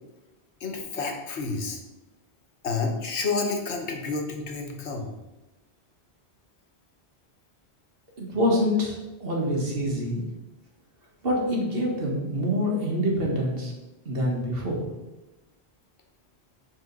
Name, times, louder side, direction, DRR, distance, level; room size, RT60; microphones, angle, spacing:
voice 1, 0.6-1.8 2.6-5.1, left 4 dB, 85° left, 3 dB, 1.3 m, -29 dB
voice 2, 8.2-10.2 11.2-13.7 14.1-14.8, equal, 60° right, -1 dB, 1.7 m, -26 dB
7.0 x 3.7 x 5.3 m, 1.0 s
omnidirectional pair, 1.1 m